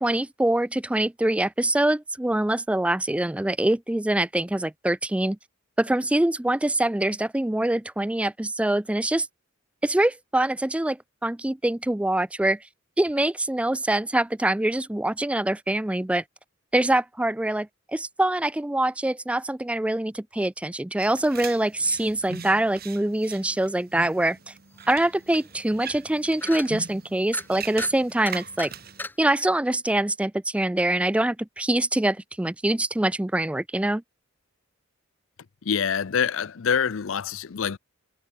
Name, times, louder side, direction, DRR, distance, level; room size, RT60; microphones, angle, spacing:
voice 1, 0.0-5.4 5.8-9.3 9.8-12.6 13.0-16.2 16.7-24.5 24.9-28.7 29.2-34.0, right 1 dB, 5° right, 0.3 m, -24 dB
sound 1, 21.0-29.1, right 5 dB, 50° right, 3.3 m, -41 dB
sound 2, 25.1-25.2 25.5-25.6 25.9-26.1 26.4-26.7 27.3-27.5 27.8-27.9 28.3-28.7 29.0-29.1, left 2 dB, 10° left, 0.7 m, -35 dB
voice 2, 35.6-37.8, left 7 dB, 70° left, 0.5 m, -25 dB
head